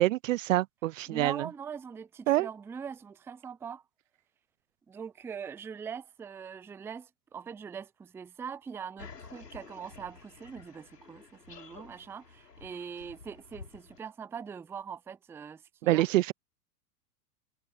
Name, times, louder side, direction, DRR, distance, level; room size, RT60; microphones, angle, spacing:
voice 1, 0.0-1.5 2.3-2.5 15.8-16.3, right 16 dB, 55° right, 0.6 m, -26 dB
voice 2, 1.1-3.8 4.9-16.1, right 6 dB, 5° right, 0.5 m, -42 dB
sound 1, 9.0-14.0, left 5 dB, 85° left, 3.8 m, -51 dB
figure-of-eight pair, 100°, 47 cm